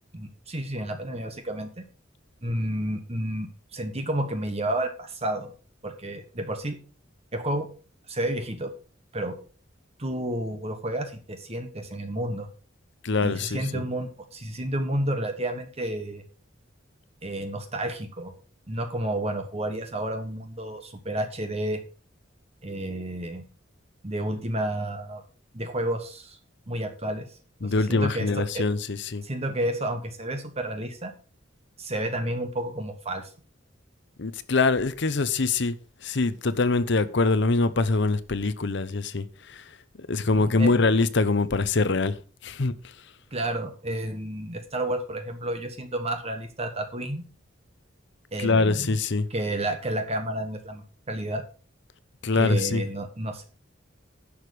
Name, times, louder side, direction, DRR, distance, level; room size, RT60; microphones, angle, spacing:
voice 1, 0.1-1.7 2.4-5.5 5.8-6.8 7.3-7.7 8.1-8.7 9.1-9.4 10.0-12.5 13.2-16.2 17.2-18.3 18.7-21.8 22.6-23.4 24.0-25.2 25.5-26.4 26.7-27.3 27.6-28.7 29.2-31.1 31.8-33.3 40.2-40.8 43.3-47.2 48.3-48.9 49.3-51.4 52.3-53.4, right 1 dB, 35° right, 1.2 m, -31 dB
voice 2, 13.0-13.8 27.6-29.2 34.2-35.8 36.0-39.6 40.1-42.2 42.4-42.7 48.4-49.3 52.2-52.8, left 3 dB, 65° left, 0.8 m, -24 dB
11.0 x 6.5 x 4.9 m
head